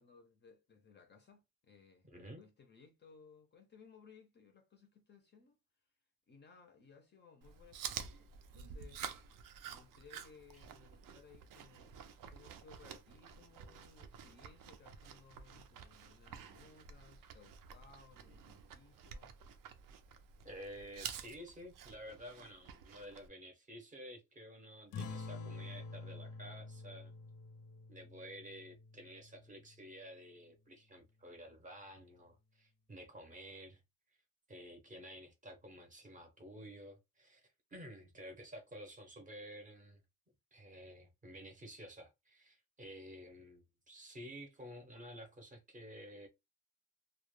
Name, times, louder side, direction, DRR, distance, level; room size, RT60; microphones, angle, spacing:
voice 1, 0.0-2.1 2.4-5.9 6.3-9.3 9.7-12.0 12.3-19.4, left 5 dB, 35° left, 0.4 m, -62 dB
voice 2, 2.0-2.4 20.4-27.1 27.9-33.8 34.5-37.4 37.7-40.0 40.5-46.3, equal, 25° right, 0.6 m, -52 dB
Chewing mastication, 7.4-23.3, right 8 dB, 70° right, 0.5 m, -50 dB
sound 1, 24.9-29.9, left 3 dB, 90° left, 0.5 m, -48 dB
2.1 x 2.0 x 3.0 m
cardioid pair, 170°, 33 cm